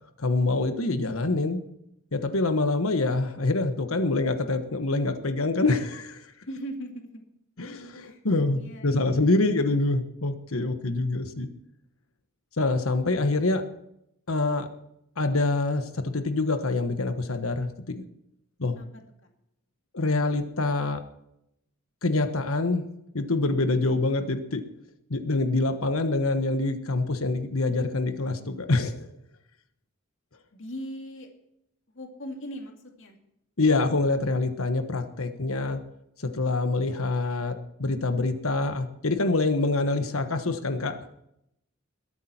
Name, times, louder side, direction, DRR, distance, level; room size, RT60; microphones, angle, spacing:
voice 1, 0.2-1.6 2.1-6.2 7.6-11.5 12.6-13.6 14.3-14.7 15.2-18.0 18.6-18.8 19.9-21.0 22.0-22.8 23.1-24.6 25.1-29.1 33.6-35.8 36.2-41.0, left 2 dB, 75° left, 8 dB, 1.3 m, -25 dB
voice 2, 6.5-7.2 8.0-8.2 8.5-9.3 18.8-18.9 30.5-31.3 31.9-32.7 33.0-33.1, equal, 60° left, 3 dB, 2.3 m, -38 dB
21.5 x 8.7 x 4.4 m, 0.79 s
head